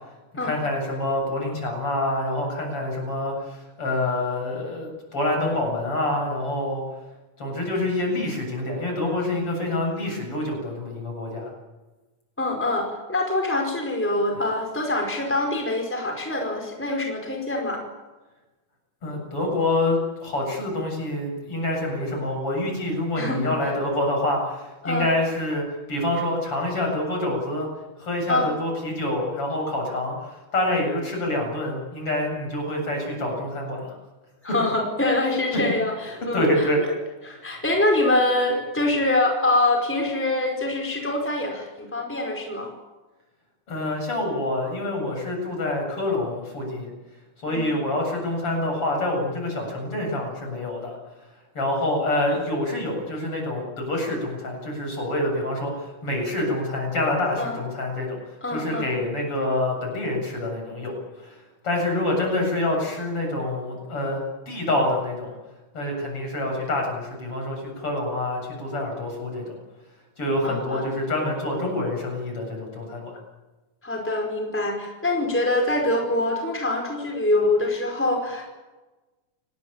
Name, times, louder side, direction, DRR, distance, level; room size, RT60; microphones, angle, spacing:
voice 1, 0.4-6.8 7.4-11.5 19.0-27.7 28.0-34.0 34.5-34.6 36.3-36.8 43.7-46.9 47.4-51.0 51.6-58.2 58.5-61.4 61.6-64.2 64.5-65.3 65.7-69.6 70.2-73.1, left 1 dB, 50° left, 1 dB, 8.8 m, -26 dB
voice 2, 12.4-17.8 23.2-23.5 24.8-25.0 28.3-28.5 34.4-36.9 37.2-42.7 47.5-47.7 57.4-57.6 58.4-58.9 70.4-70.9 73.8-78.5, left 2 dB, 5° left, 1 dB, 4.8 m, -24 dB
29.5 x 20.0 x 8.8 m, 1.2 s
omnidirectional pair, 3.3 m